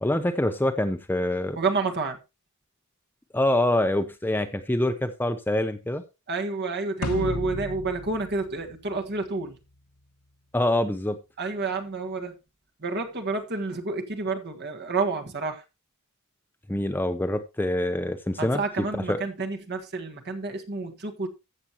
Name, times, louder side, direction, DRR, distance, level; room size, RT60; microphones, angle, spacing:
voice 1, 0.0-1.6 3.3-6.0 10.5-11.2 16.7-18.6 19.1-19.2, left 1 dB, 10° left, 0.6 m, -25 dB
voice 2, 1.5-2.2 6.3-9.6 11.4-12.4 12.8-15.6 18.4-21.3, right 3 dB, 50° right, 1.6 m, -29 dB
sound 1, 7.0-9.5, left 2 dB, 80° left, 1.0 m, -34 dB
14.5 x 7.4 x 3.0 m
head